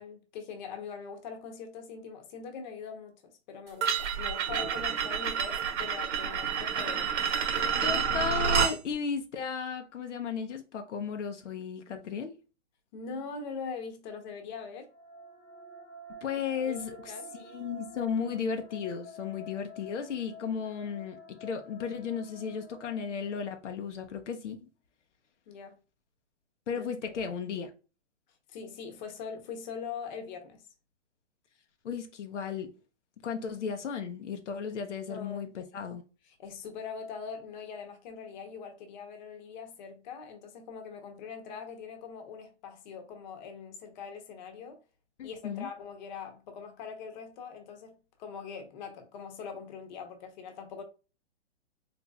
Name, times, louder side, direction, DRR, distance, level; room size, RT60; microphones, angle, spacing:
voice 1, 0.0-7.8 12.9-14.9 16.6-16.8 17.1-17.3 25.5-25.8 26.7-27.2 28.5-30.6 35.1-35.5 36.4-44.8 45.2-50.8, left 6 dB, 40° left, 0.9 m, -42 dB
sound 1, 3.8-8.8, right 7 dB, 70° right, 0.9 m, -29 dB
voice 2, 7.8-12.3 16.1-24.7 26.7-27.7 31.8-32.7 33.2-36.0 45.2-45.7, left 6 dB, 75° left, 0.7 m, -35 dB
sound 2, 14.7-23.9, left 1 dB, 25° left, 0.5 m, -49 dB
4.2 x 2.9 x 2.3 m
hypercardioid pair, 140°, 36 cm